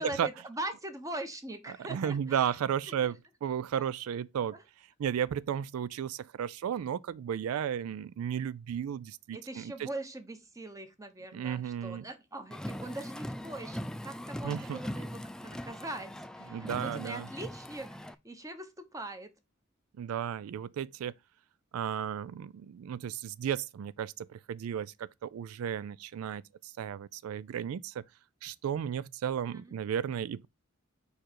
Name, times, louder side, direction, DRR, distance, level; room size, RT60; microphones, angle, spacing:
voice 1, 0.0-2.6 3.0-3.1 3.8-3.9 4.5-4.6 9.3-13.8 14.0-17.9 18.2-19.3 29.5-29.7, right 1 dB, 15° right, 1.0 m, -41 dB
voice 2, 1.7-4.6 5.0-9.9 11.3-12.0 14.4-14.8 16.5-17.3 20.0-21.1 21.7-28.0 28.4-30.5, right 8 dB, 90° right, 0.3 m, -34 dB
Car, 12.5-18.1, equal, 5° left, 0.3 m, -40 dB
5.1 x 4.7 x 4.4 m
head